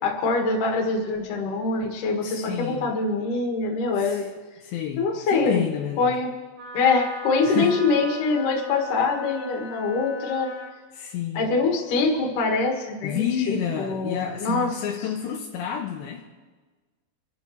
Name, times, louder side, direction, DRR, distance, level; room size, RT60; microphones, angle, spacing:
voice 1, 0.0-4.2 5.0-5.6 6.0-6.3 6.7-10.5 11.3-13.2 13.8-14.7, left 3 dB, 55° left, 1 dB, 3.1 m, -24 dB
voice 2, 2.2-2.9 4.0-4.2 4.6-6.1 7.4-7.8 10.9-11.5 13.0-16.2, left 9 dB, 80° left, 0 dB, 3.1 m, -29 dB
Wind instrument woodwind instrument, 6.6-10.7, equal, 45° right, 4.1 m, -39 dB
26.5 x 12.0 x 3.2 m, 1.3 s
omnidirectional pair, 5.1 m